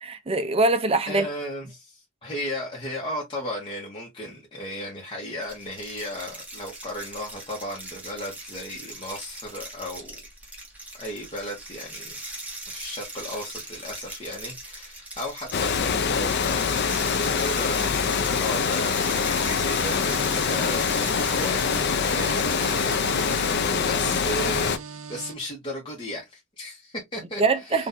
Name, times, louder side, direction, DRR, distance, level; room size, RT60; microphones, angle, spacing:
voice 1, 0.0-1.3 23.6-23.9 27.4-27.9, right 3 dB, 30° right, 0.6 m, -23 dB
voice 2, 1.1-10.2 11.0-12.2 12.7-27.9, left 1 dB, 25° left, 1.0 m, -35 dB
sound 1, 5.4-23.5, right 2 dB, 5° right, 1.1 m, -39 dB
Water, 15.5-24.8, left 6 dB, 55° left, 0.4 m, -24 dB
sound 2, 19.8-25.3, right 5 dB, 70° right, 0.6 m, -40 dB
4.0 x 2.5 x 2.6 m
head